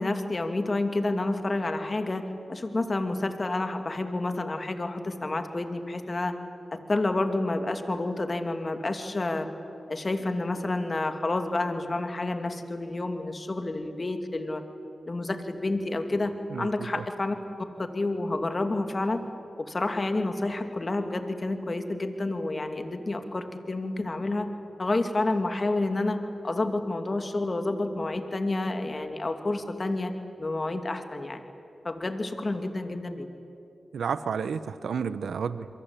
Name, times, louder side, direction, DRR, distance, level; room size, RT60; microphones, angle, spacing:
voice 1, 0.0-6.3 6.7-9.5 9.9-14.6 15.1-17.4 17.8-19.2 19.7-24.5 24.8-30.1 30.4-31.4 31.8-33.3, left 2 dB, 40° left, 7 dB, 2.5 m, -29 dB
voice 2, 16.5-17.0 33.9-35.7, right 6 dB, 85° right, 13 dB, 0.8 m, -31 dB
28.5 x 23.0 x 8.5 m, 2.7 s
cardioid pair, 40°, 0 cm